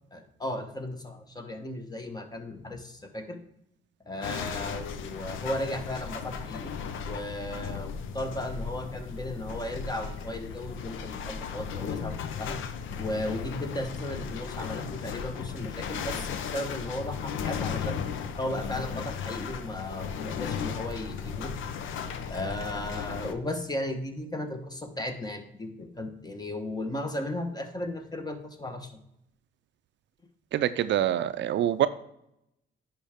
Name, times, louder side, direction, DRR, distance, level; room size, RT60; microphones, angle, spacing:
voice 1, 0.1-3.4 4.0-6.8 7.0-12.6 13.0-18.1 18.4-21.5 22.3-28.9, left 1 dB, 20° left, 6 dB, 1.2 m, -35 dB
sound 1, 4.2-23.3, left 7 dB, 80° left, 0.7 m, -36 dB
voice 2, 30.5-31.9, right 11 dB, 65° right, 13 dB, 0.4 m, -25 dB
10.0 x 4.6 x 3.6 m, 0.80 s
cardioid pair, 90°, 20 cm